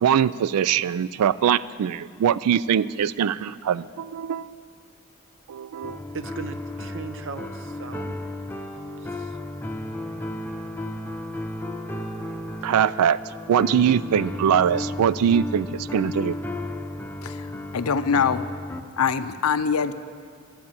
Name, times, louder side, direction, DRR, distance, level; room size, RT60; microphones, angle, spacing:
voice 1, 0.0-4.6 5.5-6.0 12.6-13.2 13.5-16.4, right 8 dB, 85° right, 18 dB, 0.3 m, -22 dB
sound 1, 5.8-18.8, left 1 dB, 10° left, 0.6 m, -34 dB
voice 2, 6.1-8.1 8.4-8.5 9.0-9.4, right 4 dB, 60° right, 11 dB, 0.7 m, -38 dB
voice 3, 17.7-18.4 19.0-19.9, left 6 dB, 75° left, 13 dB, 0.5 m, -23 dB
12.0 x 8.4 x 8.8 m, 2.1 s
head